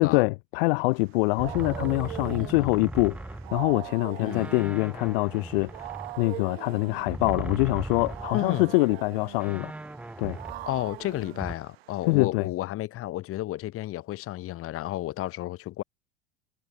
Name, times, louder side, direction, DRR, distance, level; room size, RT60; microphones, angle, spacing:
voice 1, 0.0-3.2 3.5-5.9 6.2-9.7 10.2-10.4 12.1-12.5, left 26 dB, 60° left, 0.9 m, -24 dB
Wild animals, 1.0-12.2, right 16 dB, 70° right, 3.7 m, -42 dB
sound 1, 1.4-4.0 4.3-8.6 8.9-9.0 9.4-11.5, right 2 dB, 5° right, 0.5 m, -38 dB
voice 2, 2.4-2.7 4.2-4.5 8.3-8.7 10.7-15.8, left 15 dB, 45° left, 2.4 m, -32 dB
hypercardioid pair, 85°, 32 cm